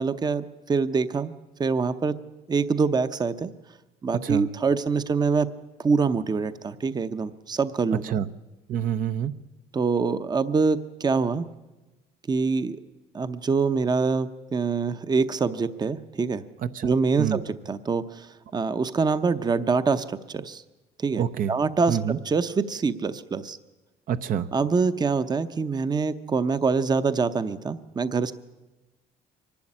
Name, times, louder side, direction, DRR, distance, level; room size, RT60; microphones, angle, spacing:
voice 1, 0.0-1.3 1.6-2.1 2.5-3.5 4.0-5.5 5.8-8.2 9.7-11.5 12.3-12.8 13.1-16.4 16.8-20.6 21.0-22.0 22.2-23.6 24.5-28.3, right 4 dB, 25° right, 11 dB, 0.8 m, -25 dB
voice 2, 8.7-9.3 16.6-16.9 17.2-17.4 21.2-21.5 21.9-22.2 24.1-24.5, right 8 dB, 55° right, 9 dB, 0.8 m, -27 dB
24.0 x 11.5 x 9.9 m, 1.1 s
cardioid pair, 110°, 17 cm